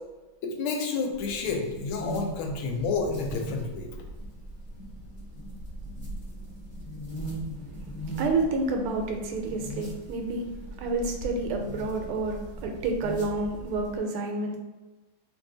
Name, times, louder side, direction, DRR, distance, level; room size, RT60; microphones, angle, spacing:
voice 1, 0.4-3.9, left 4 dB, 80° left, 2 dB, 1.4 m, -30 dB
sound 1, 1.1-14.0, right 1 dB, 30° left, 1.0 m, -39 dB
voice 2, 7.7-10.5 10.8-14.6, right 3 dB, 85° right, 3 dB, 1.5 m, -29 dB
3.2 x 2.7 x 3.7 m, 1.2 s
omnidirectional pair, 2.3 m